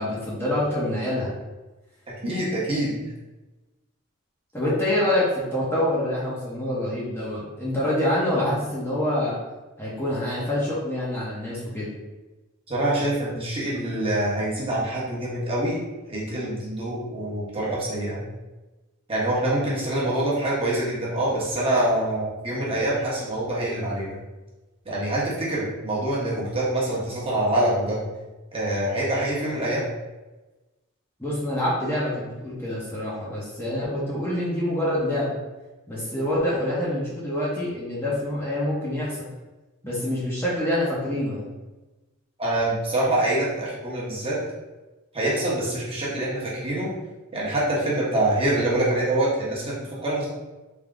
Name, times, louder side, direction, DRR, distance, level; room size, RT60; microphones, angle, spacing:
voice 1, 0.0-1.3 4.5-9.4 9.8-11.9 31.2-35.4 35.9-39.3 39.8-41.5, left 1 dB, 10° left, -7 dB, 0.9 m, -26 dB
voice 2, 2.2-3.0 12.7-15.8 16.1-18.2 19.1-24.2 24.8-28.0 28.5-29.8 42.4-44.4 45.1-46.9 47.3-50.3, right 1 dB, 25° right, -7 dB, 1.0 m, -25 dB
3.5 x 2.8 x 3.7 m, 1.1 s
head